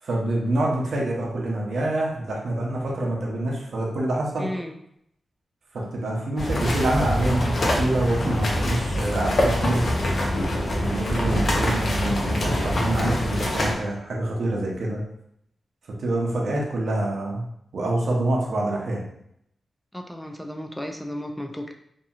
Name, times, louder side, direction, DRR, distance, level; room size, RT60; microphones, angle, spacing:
voice 1, 0.0-4.5 5.7-9.9 10.7-15.0 16.0-17.4 17.7-19.1, right 1 dB, 75° right, -2 dB, 0.7 m, -26 dB
voice 2, 4.4-4.7 19.9-21.7, equal, 5° left, 3 dB, 0.3 m, -33 dB
sound 1, 6.4-13.7, left 1 dB, 55° left, 0.6 m, -24 dB
2.7 x 2.7 x 2.4 m, 0.73 s
wide cardioid pair, 95°, 0 cm